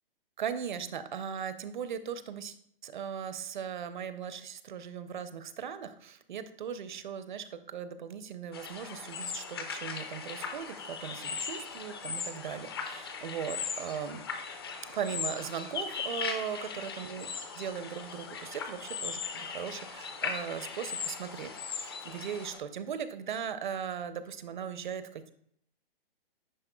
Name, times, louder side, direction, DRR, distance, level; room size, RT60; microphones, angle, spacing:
voice 1, 0.4-2.6 2.8-14.2 14.9-17.3 17.5-25.3, right 8 dB, 55° right, 12 dB, 0.6 m, -38 dB
sound 1, 8.5-22.6, left 6 dB, 25° left, 0.4 m, -38 dB
9.9 x 4.3 x 2.2 m, 0.65 s
hypercardioid pair, 160°, 30 cm